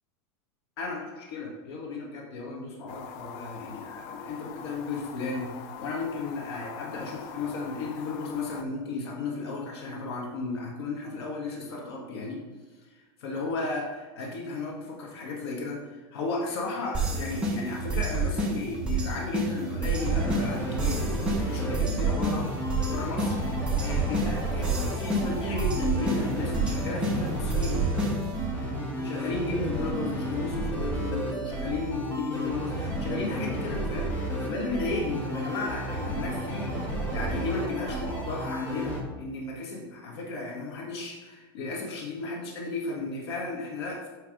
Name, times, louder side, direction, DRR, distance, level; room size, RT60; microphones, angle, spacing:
voice 1, 0.8-5.5 5.8-12.4 12.9-21.1 21.5-22.5 22.9-23.4 23.8-27.9 29.0-44.1, left 3 dB, 70° left, -1 dB, 1.6 m, -34 dB
sound 1, 2.9-8.6, left 8 dB, 40° left, 0.4 m, -43 dB
sound 2, 16.9-28.5, right 2 dB, 5° right, 0.9 m, -29 dB
sound 3, 19.9-39.0, right 1 dB, 10° left, 1.2 m, -32 dB
8.2 x 3.3 x 5.1 m, 1.3 s
supercardioid pair, 165°, 14 cm